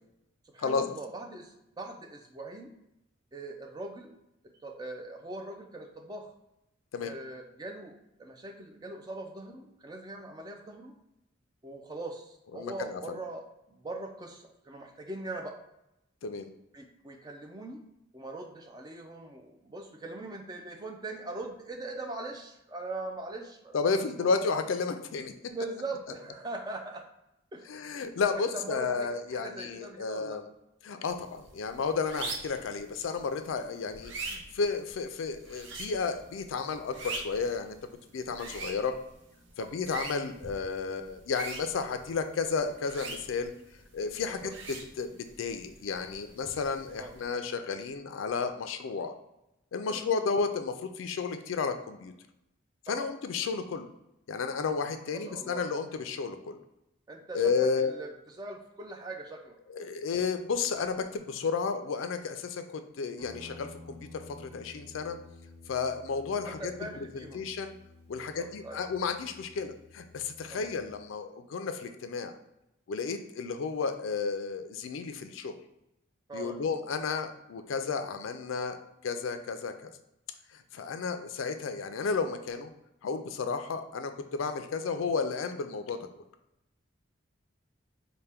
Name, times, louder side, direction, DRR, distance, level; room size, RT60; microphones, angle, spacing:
voice 1, 0.5-2.7 3.3-4.1 4.6-6.3 7.0-10.9 11.6-15.6 16.7-17.8 18.1-24.4 25.5-27.1 27.5-27.7 28.3-30.4 39.6-39.7 44.3-44.5 47.0-47.2 49.9-50.1 52.9-53.1 55.1-55.7 57.1-58.1 58.4-59.9 66.4-67.4 68.2-68.8 70.5-70.6 76.3-76.6, right 2 dB, 20° right, 3 dB, 0.4 m, -41 dB
voice 2, 12.5-13.0 16.2-16.5 23.7-25.3 27.7-30.5 30.8-37.8 38.1-38.9 39.6-43.5 43.9-49.1 49.7-52.1 52.9-53.9 54.3-56.6 57.3-57.9 59.7-65.2 65.7-66.7 67.1-67.7 68.1-72.3 72.9-75.5 76.3-78.8 79.0-79.9 80.5-82.7 83.0-86.0, left 5 dB, 80° left, 8 dB, 0.4 m, -32 dB
sound 1, 31.1-47.4, right 3 dB, 70° right, 0.6 m, -44 dB
Guitar, 63.2-71.0, left 2 dB, 55° right, 1.0 m, -52 dB
4.3 x 2.2 x 3.4 m, 0.87 s
head